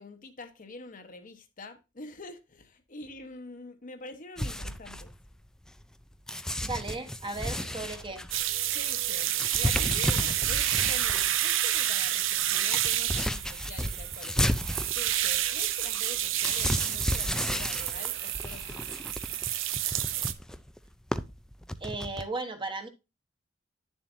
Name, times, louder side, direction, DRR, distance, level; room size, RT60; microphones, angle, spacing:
voice 1, 0.0-5.1 8.7-14.4 14.9-19.6, left 3 dB, 45° left, 1.1 m, -46 dB
sound 1, 4.4-5.9 6.3-11.3 11.8-11.9 12.1-22.2, left 1 dB, 5° left, 0.4 m, -33 dB
voice 2, 6.6-8.2 21.8-22.9, right 3 dB, 25° right, 1.2 m, -36 dB
sound 2, 7.5-8.1 9.5-10.3 14.6-16.1 18.1-19.8, right 7 dB, 55° right, 1.2 m, -48 dB
sound 3, 8.3-20.3, right 12 dB, 75° right, 0.7 m, -29 dB
10.0 x 7.2 x 2.7 m
head